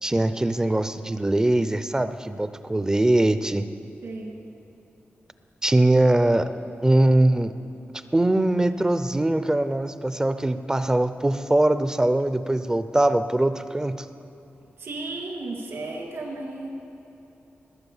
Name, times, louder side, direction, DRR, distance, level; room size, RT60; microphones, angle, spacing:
voice 1, 0.0-3.7 5.6-6.5 6.8-7.5 8.1-14.1, right 1 dB, 15° right, 11 dB, 0.4 m, -22 dB
voice 2, 4.0-4.4 14.8-16.7, right 2 dB, 75° right, 0 dB, 2.6 m, -34 dB
20.5 x 7.3 x 7.1 m, 3.0 s
wide cardioid pair, 135°, 4 cm